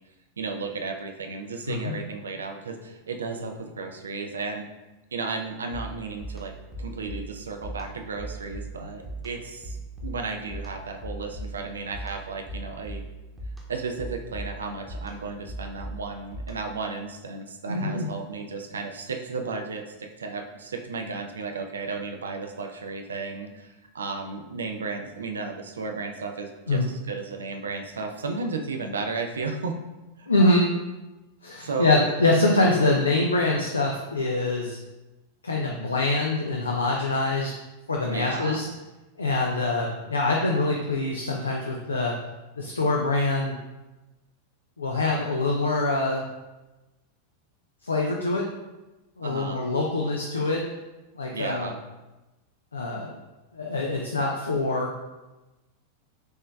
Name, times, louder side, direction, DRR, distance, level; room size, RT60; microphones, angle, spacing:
voice 1, 0.4-4.7 5.1-6.5 6.8-13.0 13.7-29.8 30.2-30.3 31.6-32.0 38.0-38.6 49.2-49.6 51.3-51.8, right 4 dB, 70° right, 4 dB, 0.5 m, -34 dB
sound 1, 5.7-16.9, right 1 dB, 10° right, 1.0 m, -39 dB
voice 2, 17.7-18.1 26.7-26.9 30.3-30.7 31.4-34.8 35.4-37.5 37.9-38.7 39.2-42.2 42.6-43.6 44.8-46.2 47.8-48.5 49.2-50.7 51.2-51.7 52.7-53.1 53.5-54.9, left 2 dB, 75° left, -1 dB, 0.4 m, -24 dB
6.3 x 3.1 x 2.3 m, 1.1 s
figure-of-eight pair, 90°, 0 cm